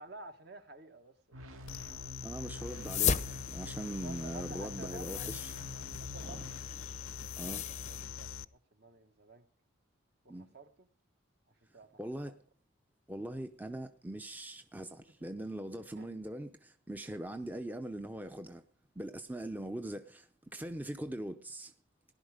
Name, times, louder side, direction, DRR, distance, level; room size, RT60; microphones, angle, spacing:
voice 1, 0.0-2.4 4.0-5.3 6.0-6.6 7.3-9.4 10.2-10.9 11.5-11.9 12.2-12.3 15.2-15.3 15.9-16.1 17.3-17.4, right 2 dB, 50° right, 1.6 m, -52 dB
sound 1, 1.3-6.6, left 2 dB, 85° right, 2.2 m, -47 dB
sound 2, 1.7-8.5, left 8 dB, 80° left, 0.7 m, -44 dB
voice 2, 2.2-5.6 6.2-6.4 7.4-7.6 10.3-10.5 12.0-12.4 13.1-18.6 19.0-21.7, right 1 dB, 10° right, 0.6 m, -41 dB
sound 3, 2.7-8.0, left 7 dB, 35° left, 0.6 m, -38 dB
18.0 x 11.5 x 5.1 m
head